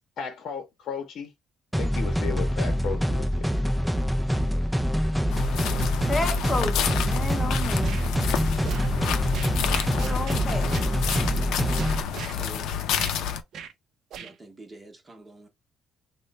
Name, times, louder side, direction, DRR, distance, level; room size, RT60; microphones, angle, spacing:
voice 1, 0.2-1.3 1.7-3.5, left 6 dB, 60° left, 0.8 m, -34 dB
sound 1, 1.7-12.0, equal, ahead, 0.4 m, -25 dB
voice 2, 4.2-5.5 12.2-12.7 14.2-15.5, right 2 dB, 20° right, 0.9 m, -48 dB
sound 2, 5.3-13.4, left 8 dB, 80° left, 0.5 m, -30 dB
voice 3, 6.1-8.0 10.0-10.7, left 2 dB, 20° left, 0.7 m, -31 dB
sound 3, 7.8-8.1 8.6-8.9 9.3-10.4 10.7-11.3 11.8-12.4 13.0-13.2 13.5-13.7 14.1-14.3, right 7 dB, 60° right, 0.5 m, -38 dB
3.1 x 2.1 x 4.0 m
cardioid pair, 130°, 0 cm